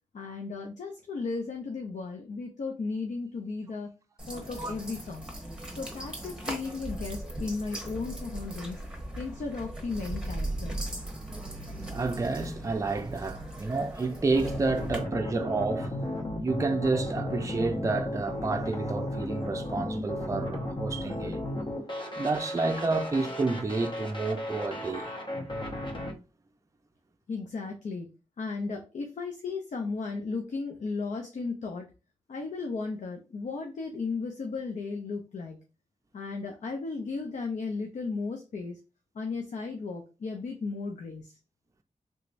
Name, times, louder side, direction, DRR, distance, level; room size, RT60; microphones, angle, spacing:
voice 1, 0.1-3.9 4.3-5.3 5.8-8.8 9.2-10.8 27.3-28.1 28.4-31.9 32.3-35.6 36.1-38.8 39.1-41.3, left 4 dB, 70° left, 0.6 m, -35 dB
sound 1, 4.2-15.0, right 1 dB, 5° right, 1.1 m, -38 dB
voice 2, 11.3-16.0 16.4-21.4 22.2-25.1, right 3 dB, 25° right, 0.4 m, -30 dB
sound 2, 14.3-26.1, left 1 dB, 40° left, 0.8 m, -35 dB
3.4 x 3.1 x 2.5 m
cardioid pair, 65°, 13 cm